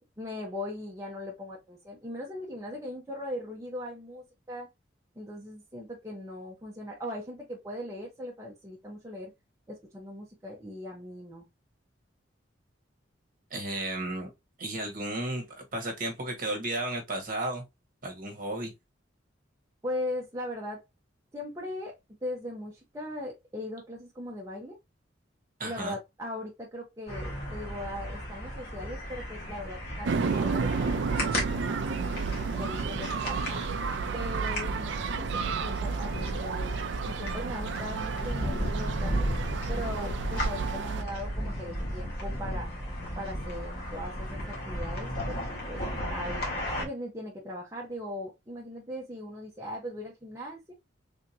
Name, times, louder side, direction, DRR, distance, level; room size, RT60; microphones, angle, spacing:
voice 1, 0.2-4.7 5.2-9.3 9.7-11.5 19.8-20.8 21.3-24.8 25.6-32.0 32.5-33.6 34.1-39.3 39.7-42.7 43.2-45.4 45.7-45.8 46.1-46.4 46.8-50.7, left 1 dB, 15° right, 0.7 m, -39 dB
voice 2, 13.5-14.3 14.6-17.6 18.0-18.7 25.6-26.0, right 1 dB, 45° right, 1.1 m, -33 dB
sound 1, 27.1-46.8, equal, 50° left, 1.4 m, -35 dB
sound 2, 30.0-41.0, right 5 dB, 65° right, 0.4 m, -31 dB
3.4 x 2.8 x 2.7 m
head